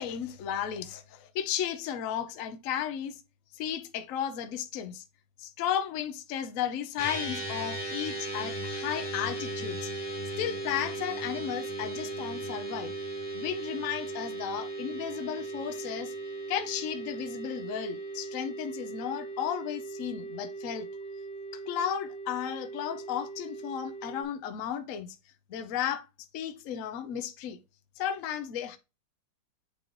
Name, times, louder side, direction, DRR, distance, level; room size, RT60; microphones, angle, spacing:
voice 1, 0.0-3.2 3.5-5.0 5.4-9.9 10.4-12.9 13.3-16.1 16.5-20.9 21.7-25.2 25.5-26.0 26.3-27.6 28.0-28.8, left 9 dB, 80° left, 0.7 m, -34 dB
sound 1, 7.0-24.2, right 2 dB, 15° left, 1.2 m, -37 dB
8.7 x 3.1 x 3.8 m
omnidirectional pair, 2.3 m